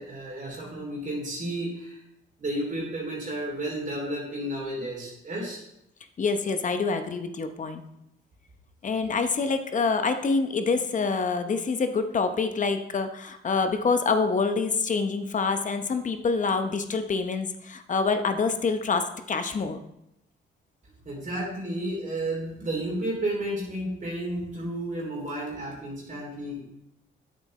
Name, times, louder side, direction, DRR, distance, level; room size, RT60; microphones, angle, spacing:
voice 1, 0.0-2.0 2.4-5.6 21.0-26.6, right 1 dB, 40° right, -3 dB, 2.9 m, -32 dB
voice 2, 6.2-7.8 8.8-19.8, left 4 dB, 40° left, 8 dB, 0.8 m, -26 dB
9.1 x 7.4 x 3.2 m, 0.81 s
cardioid pair, 90°, 20 cm